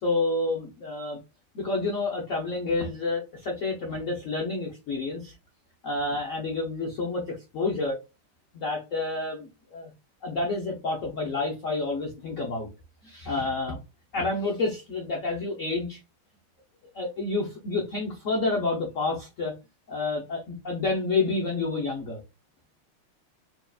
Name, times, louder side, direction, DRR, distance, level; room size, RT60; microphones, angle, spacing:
voice 1, 0.0-1.2 1.5-5.3 5.8-8.0 8.5-9.9 10.2-12.7 13.0-13.8 14.1-16.0 16.9-19.5 19.9-22.2, left 3 dB, 85° left, -1 dB, 0.6 m, -29 dB
4.5 x 2.8 x 2.3 m, 0.26 s
omnidirectional pair, 2.3 m